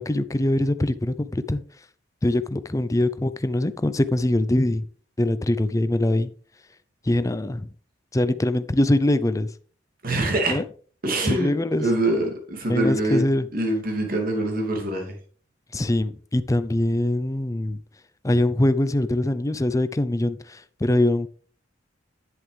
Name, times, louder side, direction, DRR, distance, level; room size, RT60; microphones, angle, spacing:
voice 1, 0.0-1.6 2.2-4.9 5.2-6.3 7.1-7.7 8.1-9.5 10.5-10.6 11.2-11.8 12.7-13.5 15.7-17.8 18.2-21.3, left 1 dB, 15° left, 0.5 m, -23 dB
voice 2, 10.0-10.6 11.0-13.3 13.5-15.1, right 1 dB, 50° right, 2.4 m, -24 dB
10.0 x 7.8 x 3.3 m
head